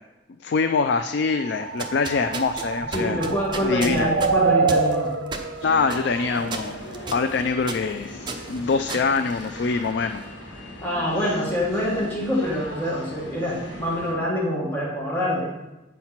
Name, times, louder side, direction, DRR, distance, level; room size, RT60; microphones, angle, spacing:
voice 1, 0.4-3.2 3.6-4.1 5.6-6.8 7.1-8.2 8.5-10.2 10.6-10.7, left 4 dB, 65° left, 8 dB, 0.4 m, -24 dB
sound 1, 1.3-7.1, right 4 dB, 65° right, 0.5 m, -26 dB
Walking on small gravel, 1.6-10.0, right 3 dB, 25° right, 0.7 m, -35 dB
voice 2, 2.9-5.1 10.8-15.5, left 1 dB, 10° left, -6 dB, 1.5 m, -25 dB
sound 2, 5.6-14.1, left 1 dB, 80° left, 1.7 m, -39 dB
8.3 x 4.5 x 5.8 m, 1.0 s
head